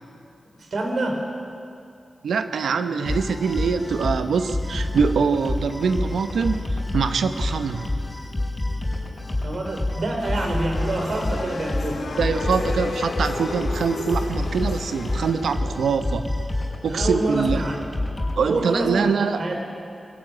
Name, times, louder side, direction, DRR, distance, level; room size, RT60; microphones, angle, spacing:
voice 1, 0.6-1.2 9.4-12.0 16.9-17.8 18.4-19.6, right 2 dB, 65° right, 2 dB, 4.4 m, -27 dB
voice 2, 2.2-7.9 12.2-16.3 16.8-17.6 18.4-19.4, right 5 dB, 85° right, 9 dB, 1.0 m, -24 dB
sound 1, 3.1-18.4, left 2 dB, 30° left, 4.9 m, -28 dB
sound 2, 10.2-15.3, left 3 dB, 75° left, 2.5 m, -33 dB
21.0 x 15.5 x 9.7 m, 2.5 s
cardioid pair, 40°, 0 cm